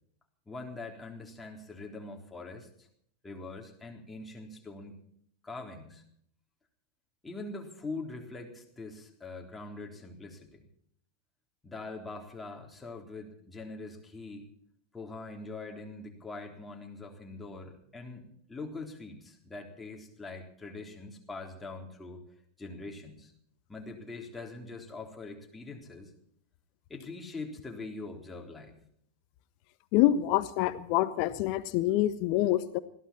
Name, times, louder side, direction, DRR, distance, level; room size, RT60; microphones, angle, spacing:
voice 1, 0.5-2.9 3.2-5.0 5.4-6.0 7.2-10.7 11.6-14.5 14.9-22.2 22.6-23.3 23.7-26.1 26.9-28.7, left 3 dB, 10° left, 2 dB, 3.7 m, -43 dB
voice 2, 29.9-32.8, left 14 dB, 45° left, 14 dB, 1.3 m, -26 dB
21.0 x 15.5 x 4.5 m, 0.66 s
figure-of-eight pair, 90°, 0 cm